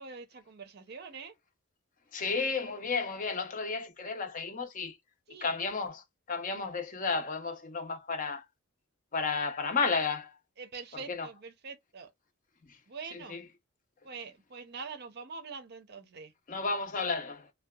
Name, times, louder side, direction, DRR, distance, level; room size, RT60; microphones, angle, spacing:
voice 1, 0.0-1.3 5.3-5.5 10.6-12.1 12.9-13.4 14.0-16.3, right 5 dB, 50° right, 0.5 m, -44 dB
voice 2, 2.1-5.0 5.4-8.4 9.1-10.4 11.1-11.3 12.7-12.8 13.1-13.4 16.5-17.5, left 4 dB, 40° left, 0.6 m, -32 dB
2.7 x 2.2 x 2.2 m
head